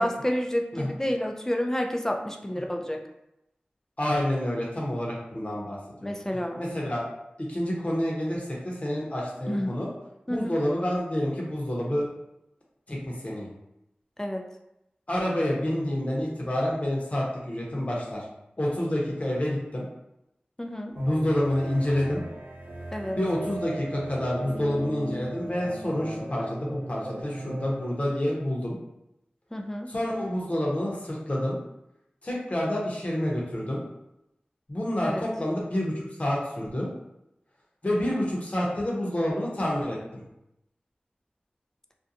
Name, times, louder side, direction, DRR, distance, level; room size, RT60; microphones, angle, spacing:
voice 1, 0.0-3.0 6.0-6.6 9.5-9.8 10.3-10.5 14.2-14.4 20.6-20.9 22.9-23.2 29.5-29.9 35.0-35.3, equal, 15° left, 3 dB, 0.3 m, -29 dB
voice 2, 4.0-6.1 6.6-7.0 7.5-9.9 10.3-12.0 12.9-13.5 15.1-18.2 18.6-19.9 20.9-22.2 23.2-28.8 29.9-31.6 32.2-33.8 34.7-36.9 37.8-40.2, left 1 dB, 40° left, -4 dB, 0.8 m, -28 dB
sound 1, 21.0-27.9, right 1 dB, 75° right, 0.4 m, -37 dB
2.5 x 2.2 x 2.7 m, 0.87 s
wide cardioid pair, 50°, 3 cm